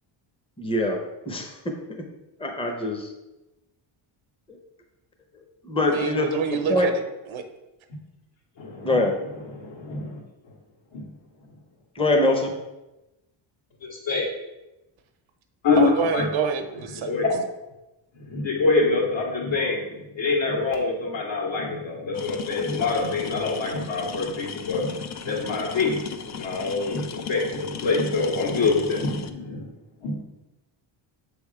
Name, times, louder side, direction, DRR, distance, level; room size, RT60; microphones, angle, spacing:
voice 1, 0.6-2.0 2.4-3.1 4.5-4.6 5.6-6.9 8.8-9.1 11.9-12.5, left 1 dB, 10° left, 3 dB, 0.8 m, -24 dB
voice 2, 5.9-7.0 7.3-7.4 15.8-17.1, right 6 dB, 75° right, 7 dB, 0.9 m, -26 dB
voice 3, 8.6-9.0 9.5-10.2 10.9-11.1 13.8-14.3 15.6-16.3 17.0-17.4 18.2-29.7 30.0-30.2, left 3 dB, 65° left, -1 dB, 1.9 m, -25 dB
sound 1, 22.1-29.3, left 8 dB, 40° left, 0.4 m, -37 dB
7.1 x 3.5 x 4.8 m, 0.99 s
cardioid pair, 135°, 48 cm